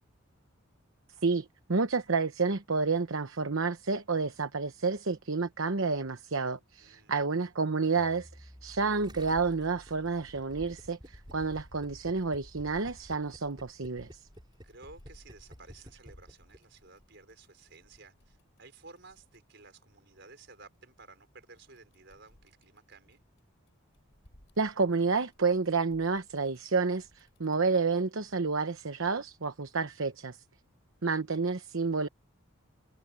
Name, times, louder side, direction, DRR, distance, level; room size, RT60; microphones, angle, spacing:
voice 1, 1.2-14.2 24.6-30.4 31.0-32.1, right 4 dB, 70° right, 0.9 m, -30 dB
voice 2, 6.8-7.2 14.6-23.2, right 3 dB, 55° right, 5.2 m, -54 dB
sound 1, 7.9-14.2, equal, 10° left, 3.8 m, -56 dB
Gurgling, 9.0-16.9, equal, 20° right, 4.6 m, -52 dB
sound 2, 10.5-19.4 21.6-23.4 23.7-27.5, equal, 60° left, 5.0 m, -56 dB
head